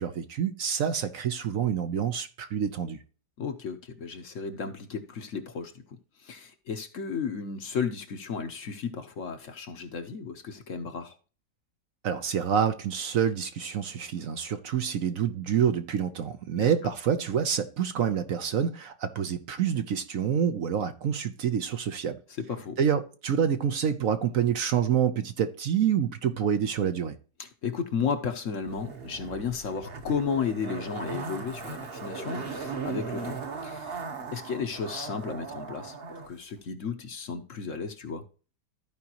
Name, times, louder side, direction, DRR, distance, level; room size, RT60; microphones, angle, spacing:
voice 1, 0.0-3.0 12.0-22.2 22.8-27.2, right 8 dB, 60° right, 1.0 m, -27 dB
voice 2, 3.4-5.7 6.2-11.1 16.6-16.7 22.4-22.8 27.4-34.0 34.3-36.0 36.3-38.2, left 6 dB, 55° left, 1.2 m, -33 dB
Zipper (clothing), 28.7-36.3 36.6-36.7, right 4 dB, 40° right, 1.1 m, -38 dB
14.0 x 5.1 x 2.9 m
omnidirectional pair, 1.8 m